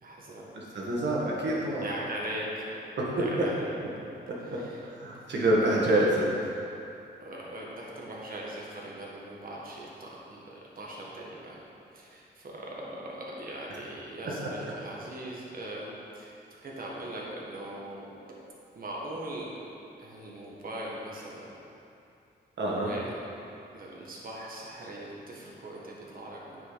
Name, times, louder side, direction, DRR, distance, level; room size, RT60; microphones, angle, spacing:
voice 1, 0.0-0.5 1.8-2.7 3.2-3.7 4.4-4.8 5.8-6.1 7.2-11.6 11.9-16.3 16.6-18.1 18.7-19.6 20.0-21.6 22.6-23.2 23.7-26.6, right 1 dB, 50° right, -4 dB, 1.6 m, -40 dB
voice 2, 0.5-1.9 3.0-3.5 4.3-6.2 14.2-14.5 22.6-22.9, right 1 dB, 70° right, -4 dB, 1.7 m, -27 dB
9.5 x 5.2 x 4.1 m, 2.7 s
wide cardioid pair, 110°, 19 cm